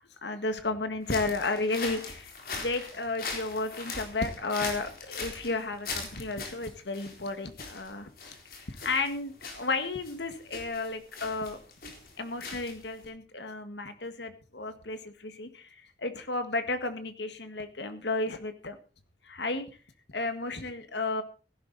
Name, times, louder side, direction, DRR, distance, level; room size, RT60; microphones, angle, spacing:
voice 1, 0.0-8.3 8.6-11.6 12.2-18.8 19.2-19.7 20.1-21.2, left 3 dB, 85° left, 8 dB, 1.8 m, -33 dB
sound 1, 1.0-13.1, left 4 dB, 55° left, 3.9 m, -41 dB
16.5 x 11.5 x 4.2 m, 0.36 s
head